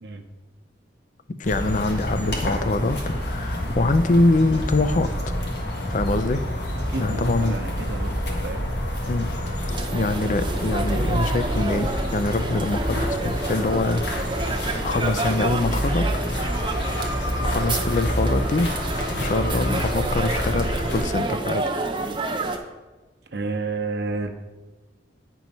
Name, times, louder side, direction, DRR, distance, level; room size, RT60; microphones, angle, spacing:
sound 1, 1.4-21.0, equal, 70° left, 1.8 m, -28 dB
voice 1, 1.4-5.1 5.9-6.4 7.0-7.6 9.1-9.3 9.9-14.0 14.3-16.1 17.4-18.7 19.2-21.6, left 2 dB, 45° left, 10 dB, 0.5 m, -24 dB
voice 2, 6.9-8.7 23.3-24.3, right 3 dB, 65° right, 5 dB, 0.8 m, -30 dB
sound 2, 9.7-22.6, right 2 dB, 30° right, 0.8 m, -29 dB
9.4 x 4.6 x 5.4 m, 1.2 s
head